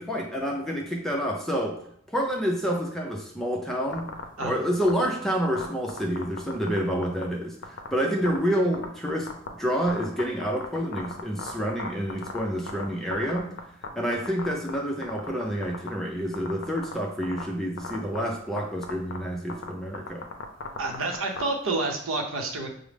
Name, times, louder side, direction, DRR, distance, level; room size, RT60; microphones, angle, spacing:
voice 1, 0.0-1.8 2.1-4.1 4.4-13.5 14.0-20.3, equal, ahead, -1 dB, 0.5 m, -28 dB
sound 1, 3.9-4.4 4.8-5.0 5.6-6.8 7.0-7.2 7.6-7.9 8.3-8.4 8.7-9.5 9.8-12.8 13.1-13.9 14.1-14.7 15.0-15.9 16.3-16.9 17.2-17.4 17.8-18.3 18.6-18.7 18.8-19.2 19.5-21.4, left 5 dB, 60° left, 0.5 m, -34 dB
voice 2, 20.8-22.7, right 2 dB, 75° right, 3 dB, 0.7 m, -29 dB
6.0 x 2.0 x 3.3 m, 0.69 s
head